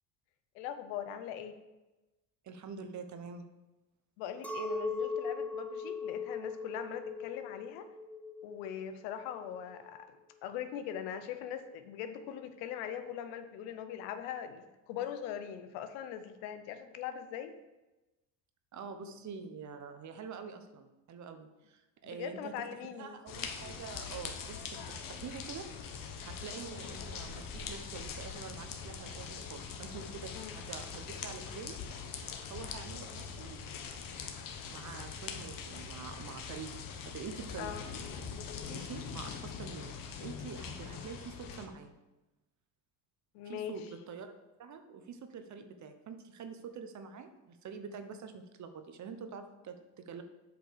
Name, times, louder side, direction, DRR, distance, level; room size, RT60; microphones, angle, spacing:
voice 1, 0.5-1.6 4.2-7.9 8.4-10.1 10.4-17.5 22.0-23.1 30.3-30.6 37.6-37.8 43.3-43.8, left 9 dB, 85° left, 9 dB, 0.9 m, -41 dB
voice 2, 2.4-3.4 18.7-31.8 32.5-33.6 34.7-36.7 37.0-37.7 38.7-41.9 43.4-44.3 44.6-50.2, right 6 dB, 45° right, 8 dB, 1.0 m, -46 dB
Chink clink, 4.4-9.9, left 4 dB, 5° left, 1.0 m, -39 dB
sound 1, 23.3-41.7, left 6 dB, 55° left, 1.1 m, -43 dB
7.9 x 5.2 x 4.9 m, 1.1 s
supercardioid pair, 95°, 40 cm